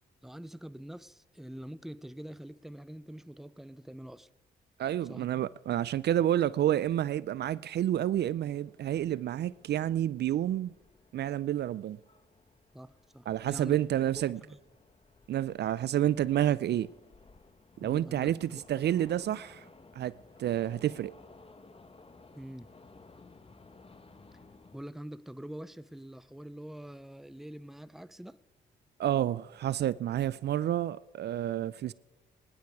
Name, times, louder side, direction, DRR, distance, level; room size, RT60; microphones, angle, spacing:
voice 1, 0.2-4.3 5.0-5.4 12.7-13.8 14.4-14.6 17.8-18.6 19.2-19.4 22.3-22.7 24.7-28.4, right 1 dB, ahead, 0.6 m, -45 dB
voice 2, 4.8-10.7 11.1-12.0 13.3-14.4 15.3-16.9 17.8-19.6 20.0-21.1 29.0-31.9, right 12 dB, 60° right, 0.4 m, -29 dB
sound 1, 5.9-24.8, left 3 dB, 30° left, 1.4 m, -58 dB
21.0 x 10.5 x 4.7 m
supercardioid pair, 55°, 19 cm